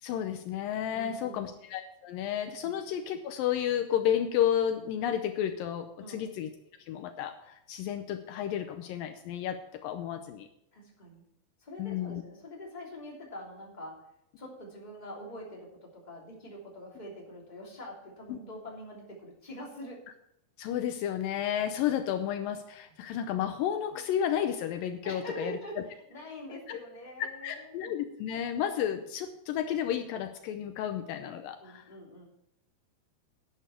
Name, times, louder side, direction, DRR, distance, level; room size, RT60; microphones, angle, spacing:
voice 1, 0.0-6.5 6.9-10.5 11.8-12.2 18.3-18.4 20.6-25.6 26.7-26.8 27.4-31.8, left 10 dB, 80° left, 8 dB, 2.4 m, -32 dB
voice 2, 0.9-1.5 2.6-2.7 6.0-6.3 10.7-11.2 11.6-14.0 14.4-20.0 25.0-25.8 26.1-27.9 31.6-32.2, equal, 15° left, -2 dB, 2.7 m, -44 dB
11.0 x 10.5 x 4.4 m, 0.77 s
omnidirectional pair, 4.2 m